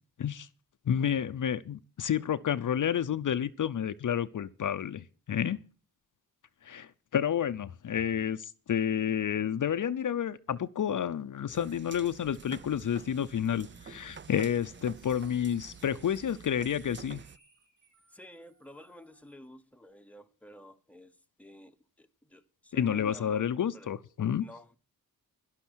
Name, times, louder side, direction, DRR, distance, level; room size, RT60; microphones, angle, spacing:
voice 1, 0.9-5.6 6.6-17.2 22.7-24.4, left 9 dB, 60° left, 0.7 m, -30 dB
sound 1, 11.5-17.4, right 6 dB, 35° right, 0.5 m, -49 dB
sound 2, 11.5-19.5, right 3 dB, 55° right, 5.9 m, -65 dB
voice 2, 18.1-23.9 24.4-24.8, left 1 dB, 5° left, 1.0 m, -51 dB
12.0 x 11.5 x 6.3 m
wide cardioid pair, 135°, 35 cm